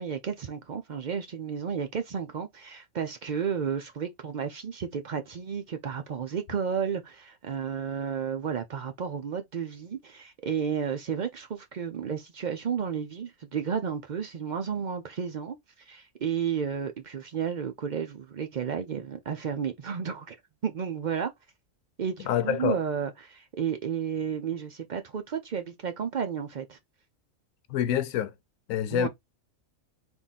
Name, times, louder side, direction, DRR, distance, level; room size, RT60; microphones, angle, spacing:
voice 1, 0.0-20.4 20.6-21.3 22.0-26.8 28.9-29.1, right 7 dB, 60° right, 0.4 m, -32 dB
voice 2, 22.3-22.8 27.7-28.3 28.7-29.1, left 9 dB, 85° left, 1.0 m, -26 dB
3.6 x 2.6 x 4.0 m
omnidirectional pair, 1.4 m